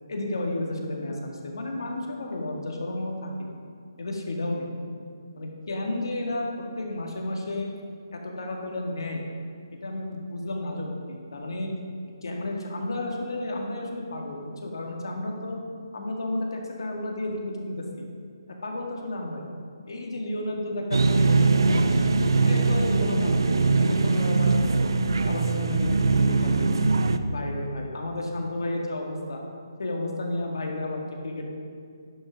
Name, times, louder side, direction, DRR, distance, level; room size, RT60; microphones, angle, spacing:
voice 1, 0.1-3.3 4.0-4.7 5.4-6.5 6.8-7.7 8.1-9.2 9.7-11.7 12.2-15.6 15.9-18.1 18.6-19.5 19.8-22.1 22.4-24.6 25.0-26.8 27.3-29.4 29.8-31.5, left 1 dB, 75° left, 1 dB, 1.9 m, -32 dB
sound 1, 20.9-27.2, right 3 dB, 80° right, 0.6 m, -22 dB
10.5 x 5.9 x 5.1 m, 2.3 s
hypercardioid pair, 165°, 2 cm